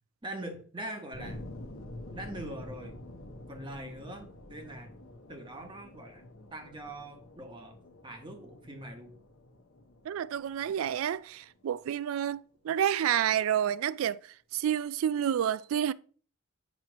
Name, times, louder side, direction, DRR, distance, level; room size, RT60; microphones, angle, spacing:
voice 1, 0.2-1.4 2.1-3.0 3.5-5.0 5.3-7.8 8.0-9.2, right 1 dB, 25° right, 1.1 m, -43 dB
sound 1, 1.1-11.9, left 1 dB, 90° left, 0.9 m, -48 dB
voice 2, 10.1-14.3 14.5-15.9, right 9 dB, 80° right, 0.3 m, -29 dB
7.4 x 2.9 x 6.0 m
head